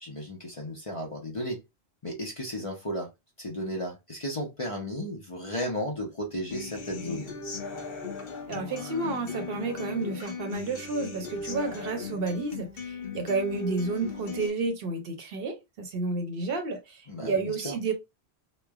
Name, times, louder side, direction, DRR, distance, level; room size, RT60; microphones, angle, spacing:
voice 1, 0.0-1.6 2.0-3.1 3.4-7.3 17.1-17.8, equal, 35° left, 0.6 m, -34 dB
Human voice / Acoustic guitar, 6.5-14.5, left 4 dB, 60° left, 1.0 m, -37 dB
voice 2, 8.5-17.9, right 3 dB, 65° right, 0.8 m, -31 dB
3.1 x 2.1 x 2.2 m
omnidirectional pair, 1.1 m